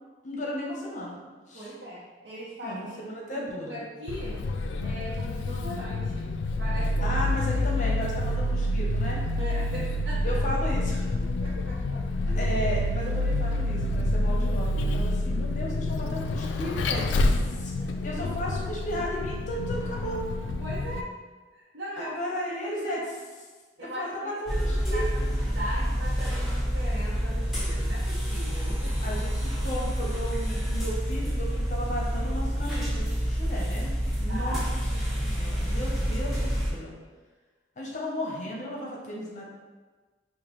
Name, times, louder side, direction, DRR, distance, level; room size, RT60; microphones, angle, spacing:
voice 1, 0.2-1.2 1.5-1.7 2.6-3.8 7.0-9.2 10.2-11.1 12.3-17.7 18.0-20.2 22.0-23.0 23.8-25.1 29.0-33.9 34.2-34.6 35.2-36.9 37.8-39.4, equal, 40° left, -3 dB, 0.6 m, -34 dB
voice 2, 1.5-3.0 3.3-4.4 4.8-6.3 6.6-7.2 9.4-10.4 11.0-12.5 17.7-18.1 18.4-18.5 20.6-21.1 21.5-22.1 22.5-23.0 23.8-29.1 34.3-34.6, equal, 90° right, -7 dB, 0.7 m, -40 dB
Vehicle, 4.1-21.0, left 1 dB, 85° left, 0.3 m, -28 dB
sound 1, 24.5-36.7, equal, ahead, 1.0 m, -28 dB
5.0 x 2.2 x 3.0 m, 1.4 s
head